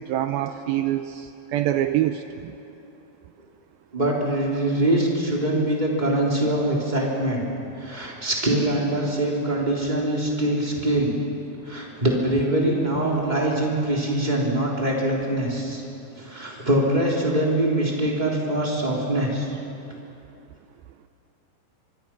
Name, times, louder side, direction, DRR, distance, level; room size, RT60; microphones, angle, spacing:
voice 1, 0.0-2.5, right 12 dB, 80° right, 8 dB, 2.1 m, -25 dB
voice 2, 3.9-7.4 7.8-11.1 11.6-15.8 16.2-19.5 19.9-20.0, right 1 dB, 10° right, -3 dB, 3.0 m, -23 dB
24.5 x 23.5 x 6.1 m, 2.7 s
omnidirectional pair, 4.9 m